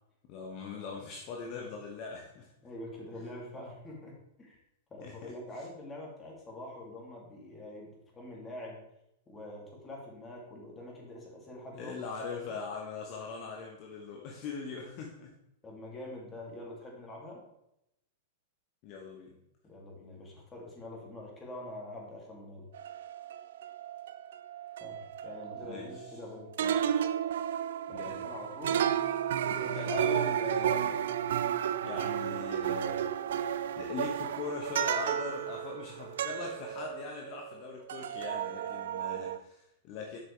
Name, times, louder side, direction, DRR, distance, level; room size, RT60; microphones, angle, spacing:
voice 1, 0.3-2.5 3.1-3.3 5.0-5.6 11.7-15.3 18.8-19.4 25.5-26.2 26.6-27.1 27.6-28.3 29.4-31.4 31.8-33.1 33.8-40.2, left 4 dB, 45° left, 0 dB, 1.2 m, -41 dB
voice 2, 2.6-4.6 4.9-8.8 9.3-11.9 12.3-12.6 15.6-17.4 19.6-22.7 24.8-26.5 27.9-28.8, left 1 dB, 20° left, -2 dB, 2.8 m, -45 dB
sound 1, 22.7-26.3 26.6-37.6 37.9-39.4, right 9 dB, 70° right, 0.4 m, -33 dB
7.9 x 6.1 x 3.5 m, 0.83 s
hypercardioid pair, 110°, 0 cm